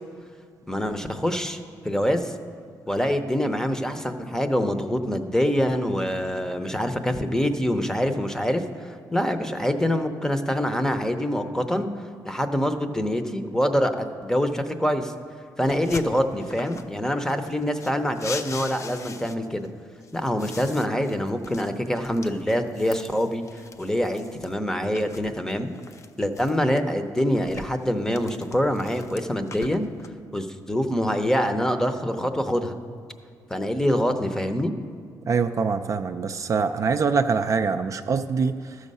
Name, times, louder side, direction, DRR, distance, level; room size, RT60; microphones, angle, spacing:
voice 1, 0.7-1.6 1.8-2.3 2.9-15.1 15.6-19.7 20.1-23.4 23.8-25.7 26.2-29.9 30.3-32.8 33.5-34.7, equal, 5° left, 8 dB, 0.7 m, -25 dB
sound 1, 15.7-16.9 17.3-19.7 20.0-24.5 24.9-26.8 27.2-30.1, left 5 dB, 40° left, 0.5 m, -41 dB
voice 2, 35.3-38.8, right 5 dB, 45° right, 7 dB, 0.4 m, -24 dB
13.5 x 6.4 x 5.4 m, 2.3 s
cardioid pair, 90°, 8 cm